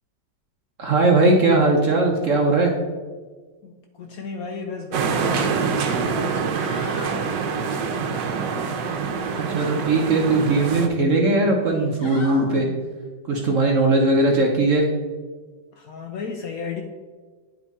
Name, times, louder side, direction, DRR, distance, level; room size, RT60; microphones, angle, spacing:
voice 1, 0.8-2.7 9.4-12.7 13.2-14.9, right 2 dB, 60° right, 1 dB, 0.9 m, -19 dB
voice 2, 3.6-6.7 15.7-16.8, left 5 dB, 70° left, 3 dB, 0.9 m, -34 dB
sound 1, 4.9-10.9, right 5 dB, 75° right, 1.3 m, -25 dB
sound 2, 6.6-7.2 8.6-9.6 10.0-10.9 11.6-12.5 14.2-14.3, left 1 dB, 40° left, 1.6 m, -41 dB
9.1 x 3.6 x 4.0 m, 1.4 s
omnidirectional pair, 2.0 m